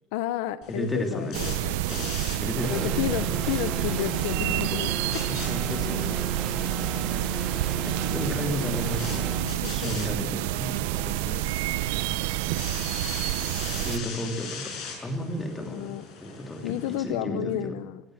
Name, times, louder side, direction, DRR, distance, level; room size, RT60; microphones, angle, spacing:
voice 1, 0.1-1.8 2.7-5.3 9.6-10.1 11.3-11.6 15.6-16.0 16.6-18.0, left 13 dB, 75° left, 14 dB, 0.8 m, -32 dB
sound 1, 0.6-17.0, left 5 dB, 50° left, 6.7 m, -42 dB
voice 2, 0.7-1.6 1.9-2.1 2.4-3.4 5.3-6.3 7.8-11.1 13.8-15.9 16.2-17.8, equal, 10° left, 3 dB, 2.8 m, -33 dB
sound 2, 1.3-14.0, right 15 dB, 80° right, 0.8 m, -29 dB
sound 3, 2.6-9.4, right 4 dB, 10° right, 2.4 m, -34 dB
25.0 x 16.5 x 7.9 m, 1.1 s
cardioid pair, 160°, 0 cm